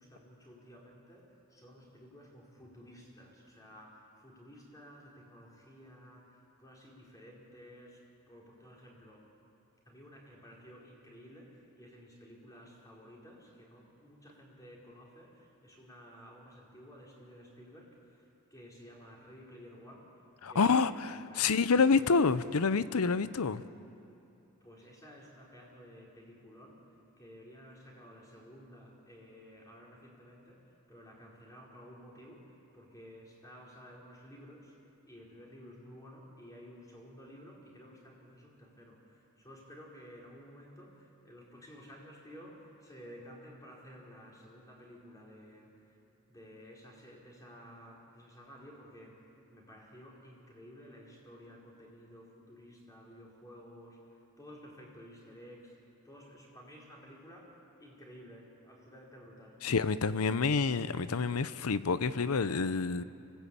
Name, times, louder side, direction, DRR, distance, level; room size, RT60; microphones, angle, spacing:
voice 1, 0.0-9.2 9.9-20.1 20.5-22.2 24.6-45.9 46.2-55.8 56.0-59.6, equal, 15° left, -3 dB, 4.4 m, -53 dB
voice 2, 20.4-23.6 59.6-63.0, left 4 dB, 80° left, 15 dB, 0.7 m, -28 dB
25.5 x 17.5 x 8.7 m, 2.8 s
head